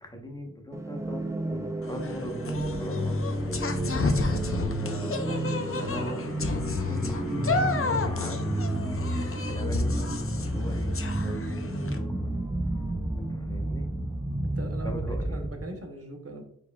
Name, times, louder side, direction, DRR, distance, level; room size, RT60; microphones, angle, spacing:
voice 1, 0.0-3.2 4.8-6.2 6.8-8.6 9.5-12.3 13.2-13.9 14.8-15.5, equal, 15° left, 2 dB, 1.0 m, -39 dB
sound 1, 0.7-15.7, right 1 dB, 10° right, 0.5 m, -32 dB
sound 2, 1.8-12.0, left 3 dB, 45° left, 0.5 m, -33 dB
sound 3, 2.7-15.0 15.3-15.5, left 2 dB, 80° left, 0.7 m, -35 dB
voice 2, 14.4-16.4, right 2 dB, 50° right, 4 dB, 0.9 m, -40 dB
4.7 x 4.4 x 2.3 m, 0.73 s
wide cardioid pair, 40°, 30 cm